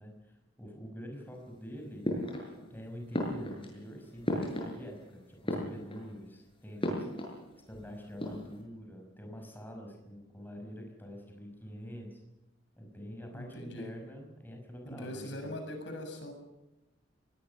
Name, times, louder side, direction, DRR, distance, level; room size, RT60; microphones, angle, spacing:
voice 1, 0.0-2.3 2.7-7.2 7.7-12.2 12.8-15.6, equal, 10° left, 2 dB, 5.5 m, -46 dB
sound 1, 2.0-2.8 3.1-5.1 5.4-6.2 6.8-8.6, equal, 30° left, 7.4 m, -35 dB
voice 2, 13.3-13.9 14.9-16.3, left 1 dB, 65° left, 5 dB, 7.1 m, -41 dB
23.5 x 19.5 x 6.9 m, 0.97 s
head